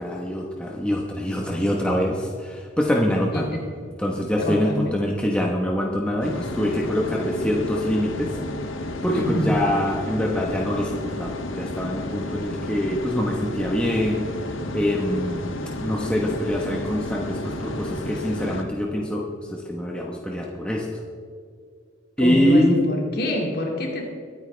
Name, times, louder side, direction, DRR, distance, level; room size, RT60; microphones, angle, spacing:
voice 1, 0.0-3.5 4.0-8.3 9.0-14.3 14.7-15.5 15.8-19.3 19.5-20.9 22.2-22.8, equal, 5° left, -2 dB, 1.1 m, -24 dB
voice 2, 4.5-4.9 9.1-9.6 22.2-24.0, equal, 50° left, 0 dB, 2.2 m, -26 dB
sound 1, 6.2-18.6, left 2 dB, 80° left, 1.2 m, -32 dB
22.5 x 9.2 x 3.4 m, 2.1 s
head